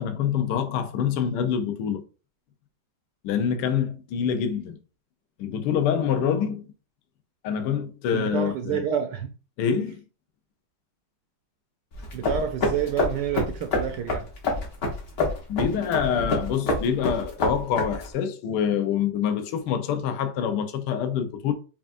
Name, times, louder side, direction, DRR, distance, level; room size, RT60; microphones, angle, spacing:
voice 1, 0.0-2.0 3.2-4.8 5.4-6.6 7.4-8.8 9.6-10.0 15.5-21.5, left 8 dB, 70° left, 1.1 m, -26 dB
voice 2, 8.1-9.3 12.1-14.3, right 8 dB, 75° right, 1.1 m, -28 dB
sound 1, 11.9-18.1, left 2 dB, 50° left, 1.4 m, -27 dB
5.6 x 2.5 x 2.5 m
omnidirectional pair, 2.3 m